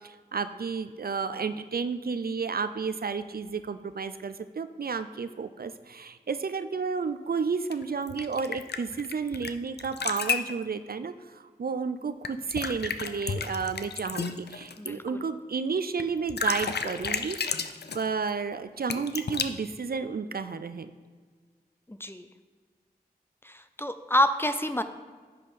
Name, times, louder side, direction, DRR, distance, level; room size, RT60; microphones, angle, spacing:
voice 1, 0.0-17.4 17.9-20.9, right 5 dB, 65° right, 11 dB, 0.4 m, -32 dB
sound 1, 7.7-9.5 9.8-10.5 12.2-14.9 16.0-16.1 16.3-18.1 18.9-19.5, left 5 dB, 90° left, 0.5 m, -32 dB
voice 2, 21.9-22.2 23.4-24.8, left 1 dB, 15° left, 9 dB, 0.5 m, -27 dB
10.0 x 5.7 x 4.1 m, 1.5 s
wide cardioid pair, 70°, 16 cm